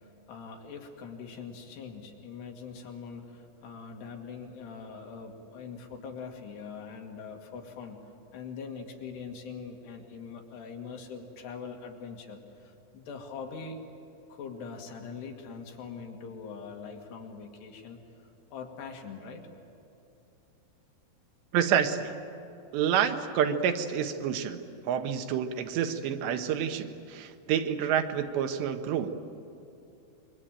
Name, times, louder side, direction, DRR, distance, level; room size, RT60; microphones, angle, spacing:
voice 1, 0.0-8.0 8.3-13.8 14.3-19.4, left 5 dB, 75° left, 2 dB, 4.3 m, -43 dB
voice 2, 21.5-22.1 22.7-24.6 24.9-29.1, right 8 dB, 85° right, 7 dB, 3.4 m, -28 dB
26.0 x 23.0 x 9.0 m, 2.7 s
omnidirectional pair, 4.9 m